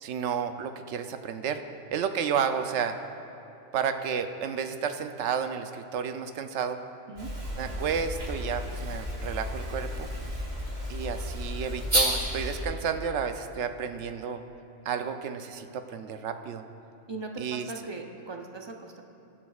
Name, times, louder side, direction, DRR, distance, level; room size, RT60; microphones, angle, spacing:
voice 1, 0.0-1.6 1.9-3.0 3.7-6.8 7.6-10.1 10.9-14.4 14.9-16.6 17.4-17.7, right 7 dB, 75° right, 8 dB, 0.9 m, -31 dB
sound 1, 7.1-12.6, equal, 60° right, 2.8 m, -31 dB
voice 2, 17.1-19.0, right 3 dB, 35° right, 3 dB, 0.4 m, -39 dB
22.0 x 7.5 x 2.4 m, 2.7 s
omnidirectional pair, 1.2 m